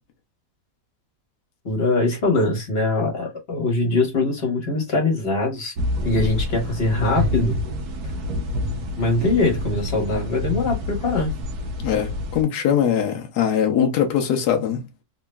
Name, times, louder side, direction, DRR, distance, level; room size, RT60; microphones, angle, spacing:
voice 1, 1.6-5.7 6.0-7.6 9.0-11.3, left 2 dB, 40° left, 1.7 m, -22 dB
sound 1, 5.8-12.4, left 1 dB, 85° right, 1.3 m, -27 dB
voice 2, 11.8-14.8, left 9 dB, 90° left, 1.3 m, -21 dB
3.6 x 3.0 x 2.2 m
omnidirectional pair, 1.6 m